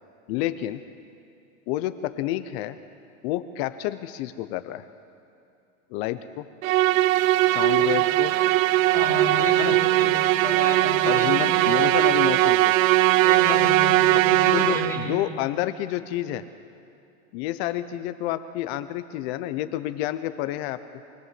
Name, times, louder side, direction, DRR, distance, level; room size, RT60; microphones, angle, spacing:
voice 1, 0.3-0.8 1.7-2.8 3.2-4.8 5.9-6.5 7.4-8.3 9.6-9.8 11.0-12.7 14.1-14.2 14.5-16.4 17.3-20.8, left 14 dB, 45° left, 11 dB, 0.9 m, -29 dB
Musical instrument, 6.6-15.2, right 16 dB, 65° right, 0.6 m, -20 dB
voice 2, 7.8-8.1 8.9-11.9 12.2-12.3 13.2-15.1, left 2 dB, 5° left, -2 dB, 2.9 m, -33 dB
24.0 x 15.5 x 7.7 m, 2.5 s
supercardioid pair, 150°, 44 cm